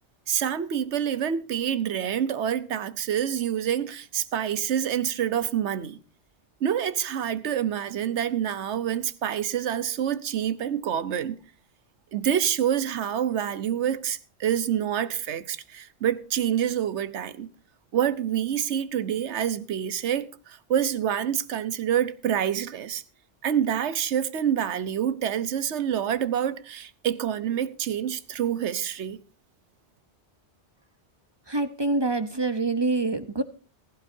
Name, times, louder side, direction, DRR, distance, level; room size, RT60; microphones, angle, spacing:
voice 1, 0.3-6.0 6.6-11.4 12.1-17.5 17.9-23.0 23.4-29.2, right 9 dB, 85° right, 1.1 m, -27 dB
voice 2, 31.5-33.4, right 3 dB, 25° right, 0.7 m, -26 dB
16.0 x 15.0 x 2.7 m
omnidirectional pair, 1.1 m